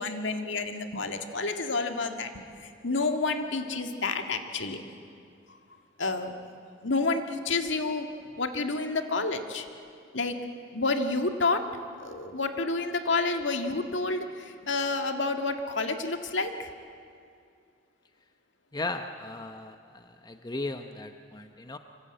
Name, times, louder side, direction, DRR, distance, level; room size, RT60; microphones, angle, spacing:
voice 1, 0.0-4.8 6.0-6.5 6.8-8.1 8.3-9.7 10.1-10.4 10.7-11.6 12.0-16.7, left 3 dB, 70° left, 6 dB, 1.8 m, -29 dB
voice 2, 18.7-21.8, left 2 dB, 20° left, 7 dB, 0.8 m, -36 dB
25.0 x 25.0 x 8.9 m, 2.3 s
head